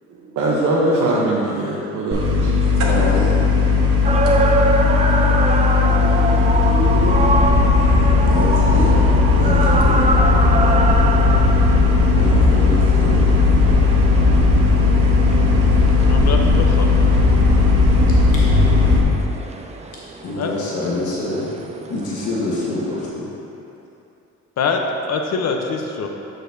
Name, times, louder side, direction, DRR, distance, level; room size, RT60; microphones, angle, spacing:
voice 1, 0.1-2.5, right 1 dB, 75° right, -6 dB, 0.9 m, -21 dB
sound 1, 2.1-19.0, left 3 dB, 50° right, 1.1 m, -16 dB
voice 2, 2.6-4.5 7.9-8.0 8.2-9.0 9.3-10.1 12.1-13.8 18.3-18.4 20.2-21.5 21.9-23.3, left 2 dB, 80° left, -6 dB, 1.3 m, -27 dB
sound 2, 4.0-23.1, right 2 dB, 25° right, 0.4 m, -25 dB
voice 3, 16.1-17.1 20.4-20.5 24.6-26.1, left 4 dB, 60° left, 3 dB, 0.7 m, -24 dB
7.6 x 6.4 x 2.6 m, 2.9 s
cardioid pair, 90°, 30 cm